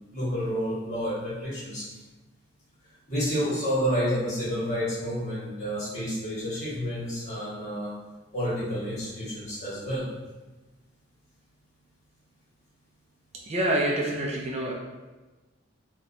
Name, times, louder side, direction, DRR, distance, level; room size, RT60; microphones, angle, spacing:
voice 1, 0.0-1.9 3.1-7.9 8.3-10.1, equal, 40° left, -8 dB, 1.5 m, -29 dB
voice 2, 13.5-14.7, right 1 dB, 35° right, -2 dB, 0.4 m, -26 dB
4.1 x 2.3 x 2.6 m, 1.2 s
head